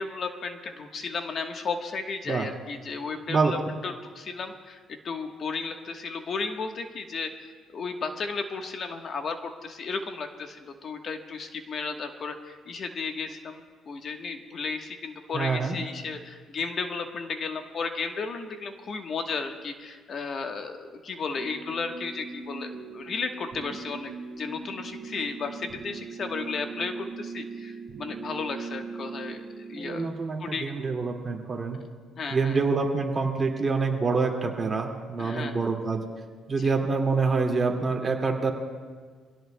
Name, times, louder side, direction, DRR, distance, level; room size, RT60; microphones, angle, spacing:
voice 1, 0.0-4.8 5.0-30.1 30.4-30.7 32.2-32.6 35.2-35.7 36.6-36.7, left 4 dB, 45° left, 5 dB, 1.2 m, -34 dB
voice 2, 15.3-15.7 29.8-31.8 32.3-36.0 36.5-38.5, right 4 dB, 30° right, 2 dB, 2.1 m, -26 dB
sound 1, 21.4-30.1, right 4 dB, 50° right, 1.6 m, -40 dB
24.0 x 17.0 x 2.2 m, 1.5 s
cardioid pair, 105°, 0 cm